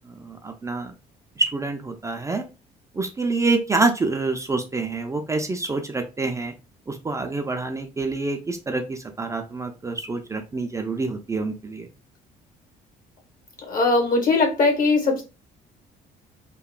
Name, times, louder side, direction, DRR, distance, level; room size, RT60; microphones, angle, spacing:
voice 1, 0.2-0.9 1.4-2.4 3.0-6.5 6.9-11.9, right 3 dB, 15° right, 4 dB, 0.4 m, -26 dB
voice 2, 13.7-15.2, left 3 dB, 55° left, 2 dB, 1.2 m, -20 dB
2.9 x 2.1 x 2.3 m, 0.29 s
cardioid pair, 110°, 17 cm